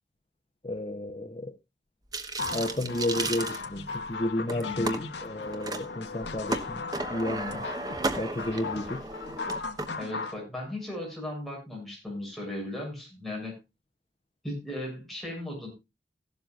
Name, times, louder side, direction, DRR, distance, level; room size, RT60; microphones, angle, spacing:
voice 1, 0.6-1.5 2.5-6.8 7.1-7.7 8.2-9.0, left 1 dB, 30° left, 0.8 m, -32 dB
sound 1, 2.1-4.1 4.5-5.0 5.5-5.8 6.2-9.9, right 2 dB, 20° right, 1.1 m, -34 dB
sound 2, 2.4-10.4, left 4 dB, 70° left, 1.1 m, -37 dB
voice 2, 4.5-4.9 10.0-13.6 14.4-15.7, left 1 dB, ahead, 7.0 m, -37 dB
15.5 x 12.0 x 2.4 m
head